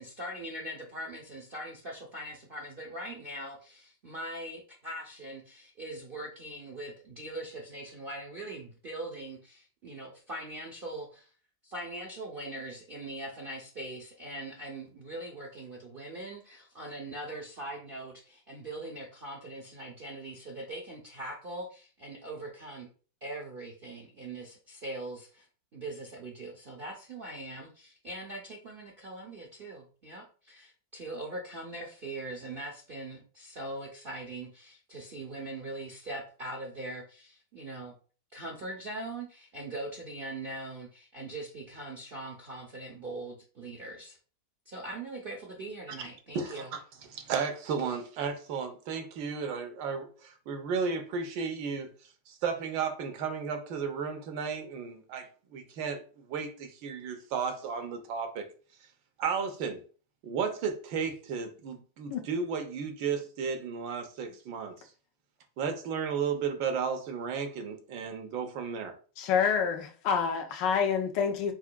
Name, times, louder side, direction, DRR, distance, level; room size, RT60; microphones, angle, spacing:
voice 1, 0.0-11.3 11.6-22.9 23.2-25.5 25.7-37.9 38.3-44.2 44.7-46.7, right 1 dB, 65° right, 0.5 m, -41 dB
voice 2, 46.3-46.8 47.1-51.9 52.3-58.5 59.2-59.8 60.2-64.7 65.6-68.9, right 6 dB, 85° right, 1.5 m, -34 dB
voice 3, 69.2-71.5, left 6 dB, 80° left, 1.3 m, -27 dB
4.7 x 4.6 x 2.2 m
omnidirectional pair, 2.0 m